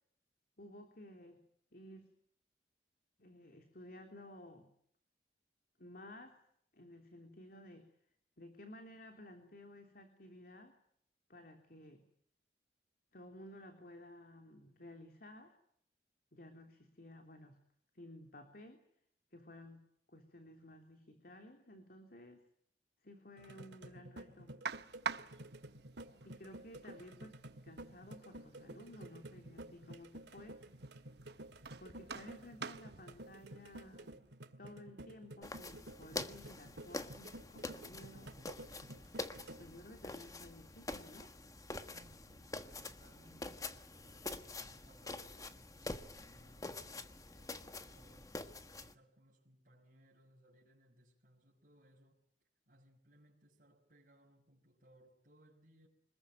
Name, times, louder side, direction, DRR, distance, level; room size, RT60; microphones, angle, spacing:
voice 1, 0.6-1.4 1.7-2.1 3.2-4.7 5.8-6.4 6.7-7.8 8.4-10.7 11.3-12.1 13.1-15.5 16.3-17.6 17.9-18.8 19.3-19.8 20.1-22.4 23.0-24.6 26.2-27.4 27.6-30.6 31.8-34.2 34.6-38.3 39.6-41.3, left 1 dB, 55° left, 3.4 m, -55 dB
sound 1, 23.4-39.8, right 1 dB, 85° right, 2.1 m, -52 dB
sound 2, 24.6-34.2, right 5 dB, 70° right, 1.1 m, -49 dB
sound 3, 35.4-48.9, left 2 dB, 20° left, 1.4 m, -46 dB
voice 2, 41.8-48.3 48.8-52.2 52.7-55.9, equal, 50° right, 5.7 m, -66 dB
26.0 x 21.0 x 9.3 m
head